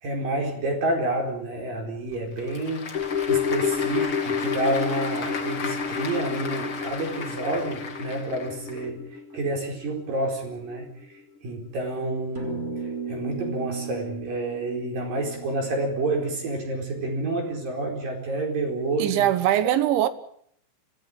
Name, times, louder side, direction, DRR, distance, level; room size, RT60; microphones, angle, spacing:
voice 1, 0.0-2.9 3.3-9.0 9.3-10.9 11.4-12.6 13.1-19.3, right 2 dB, 45° right, 5.9 m, -29 dB
Applause / Crowd, 2.1-8.8, left 5 dB, 35° left, 2.3 m, -35 dB
sound 1, 2.9-11.4 11.7-11.8, left 6 dB, 75° left, 1.3 m, -30 dB
sound 2, 12.4-17.0, right 6 dB, 20° right, 3.4 m, -36 dB
voice 2, 19.0-20.1, right 12 dB, 75° right, 3.4 m, -21 dB
26.0 x 15.5 x 9.3 m
omnidirectional pair, 5.6 m